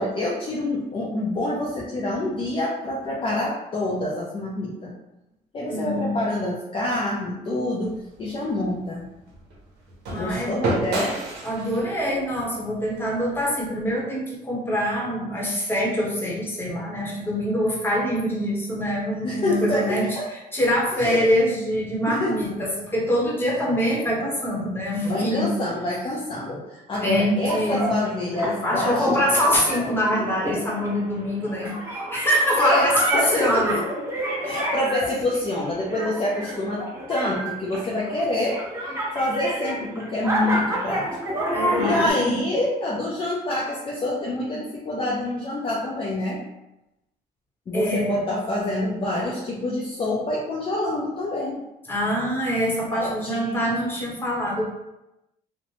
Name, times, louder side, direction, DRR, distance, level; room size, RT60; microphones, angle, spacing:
voice 1, 0.0-4.9 5.5-9.0 10.1-11.2 19.2-20.3 21.0-21.3 22.1-22.4 25.1-29.1 29.3-29.4 32.6-34.0 34.4-36.8 37.1-38.6 39.1-41.1 41.8-46.4 47.7-51.6 52.9-53.8, left 1 dB, 30° left, -4 dB, 0.5 m, -26 dB
voice 2, 5.7-6.2 10.1-10.6 11.4-25.5 27.0-28.0 28.3-33.8 34.4-34.6 41.5-42.5 47.7-48.2 51.9-54.7, equal, 15° left, -4 dB, 0.9 m, -24 dB
sound 1, 7.8-14.0, right 2 dB, 75° right, 0.8 m, -33 dB
sound 2, 27.5-42.1, right 1 dB, 15° right, 0.8 m, -29 dB
3.1 x 2.1 x 2.8 m, 0.93 s
cardioid pair, 110°, 17 cm